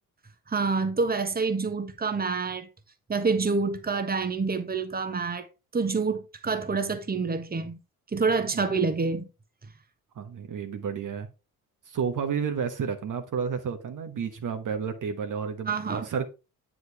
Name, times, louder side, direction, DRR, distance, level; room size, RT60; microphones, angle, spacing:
voice 1, 0.5-2.7 3.1-5.5 5.7-7.8 8.1-9.3 15.7-16.1, right 4 dB, 20° right, 1.3 m, -27 dB
voice 2, 8.5-8.8 10.1-11.3 11.9-16.3, right 6 dB, 45° right, 1.2 m, -31 dB
9.3 x 5.0 x 3.5 m
figure-of-eight pair, 40°, 45 cm